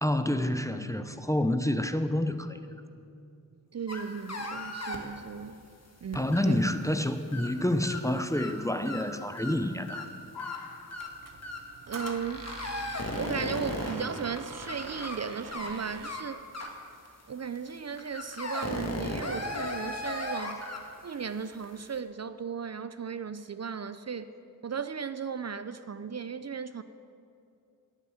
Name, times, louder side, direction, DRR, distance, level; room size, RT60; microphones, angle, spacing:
voice 1, 0.0-2.6 6.1-10.1, left 1 dB, 10° left, 0.5 m, -28 dB
voice 2, 3.7-5.6 6.0-6.6 11.9-12.5 13.2-16.4 17.3-20.6 21.0-24.3 24.6-26.8, right 6 dB, 45° right, 0.4 m, -36 dB
sound 1, 3.9-5.0 6.1-7.0 7.3-7.5 7.8-8.0 8.3-8.5 8.9-9.0 9.4-9.5 9.9-10.1 10.4-10.6 10.9-11.1 11.4-11.6 11.9-12.1 12.4-15.2 15.5-15.7 16.0-16.2 16.5-16.7 17.1-17.2 17.6-17.7 18.0-20.9 21.1-21.3 21.6-21.8, left 1 dB, 45° left, 1.5 m, -36 dB
sound 2, 6.0-6.6 8.2-8.3 8.5-8.6 9.1-9.2 9.5-11.6 12.0-13.1 13.9-14.6 15.3-15.4 15.9-16.3 16.7-16.9, left 7 dB, 85° left, 0.6 m, -48 dB
Squeak, 11.0-16.3, right 4 dB, 65° right, 0.8 m, -45 dB
11.0 x 6.8 x 8.9 m
wide cardioid pair, 75°, 36 cm